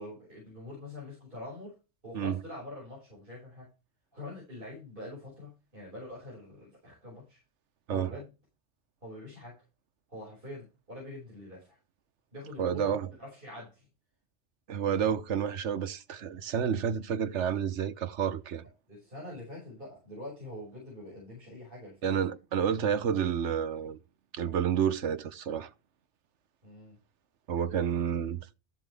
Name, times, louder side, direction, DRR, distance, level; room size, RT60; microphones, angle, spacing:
voice 1, 0.0-1.7 2.0-3.7 4.1-7.4 7.9-8.3 9.0-9.5 10.1-11.8 12.3-13.9 18.9-22.2 26.6-27.0, left 1 dB, 50° right, 5.9 m, -44 dB
voice 2, 7.9-8.2 12.6-13.1 14.7-18.6 22.0-24.0 24.3-25.7 27.5-28.4, right 8 dB, 90° right, 1.2 m, -30 dB
14.0 x 7.5 x 3.4 m
omnidirectional pair, 1.2 m